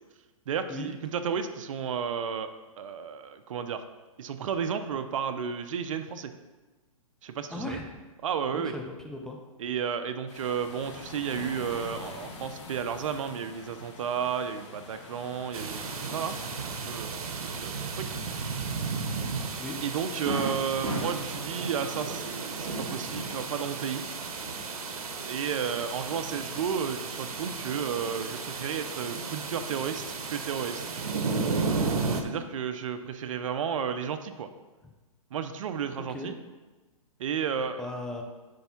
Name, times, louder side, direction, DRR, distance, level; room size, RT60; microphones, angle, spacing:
voice 1, 0.5-2.5 2.8-3.8 4.2-6.3 7.2-7.8 8.2-8.7 9.6-18.2 19.8-24.1 25.3-30.0 30.3-30.8 32.2-34.5 35.3-36.4 37.2-37.9, right 7 dB, 60° right, 9 dB, 0.7 m, -32 dB
voice 2, 7.5-8.0 8.5-9.4 19.6-19.8 36.1-36.3 37.8-38.2, left 2 dB, 5° left, 1 dB, 0.6 m, -37 dB
sound 1, 10.3-16.6, left 3 dB, 55° left, 1.7 m, -45 dB
sound 2, 15.5-32.2, right 4 dB, 90° right, 1.1 m, -34 dB
Fireworks, 20.3-24.0 24.3-25.2, right 2 dB, 15° right, 2.5 m, -37 dB
10.5 x 3.5 x 5.8 m, 1.2 s
hypercardioid pair, 150°, 18 cm